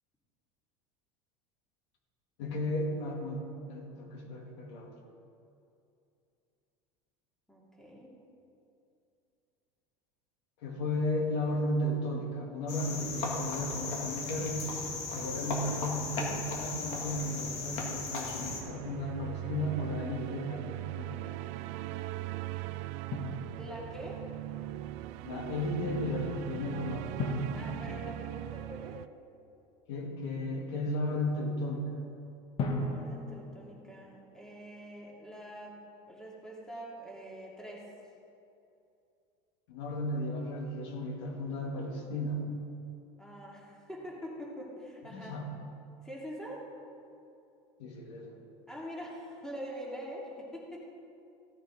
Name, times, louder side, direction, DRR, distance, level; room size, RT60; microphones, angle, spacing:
voice 1, 2.4-3.4 3.7-4.9 10.6-14.7 15.1-21.4 25.2-27.1 29.9-31.9 39.7-42.5 45.1-45.5 47.8-48.4, left 1 dB, 80° left, 0 dB, 2.2 m, -34 dB
voice 2, 7.5-8.1 23.6-24.2 27.5-29.0 32.7-35.8 36.1-37.8 43.2-45.4 46.0-46.7 48.7-51.0, equal, 5° left, -4 dB, 2.2 m, -44 dB
Cricket, 12.7-18.6, left 3 dB, 55° left, 2.1 m, -37 dB
sound 1, 18.4-29.1, right 16 dB, 60° right, 0.4 m, -40 dB
Drum, 23.1-24.2 27.2-29.0 32.6-34.6, left 2 dB, 40° left, 1.6 m, -37 dB
15.5 x 9.4 x 3.7 m, 2.6 s
supercardioid pair, 130°, 14 cm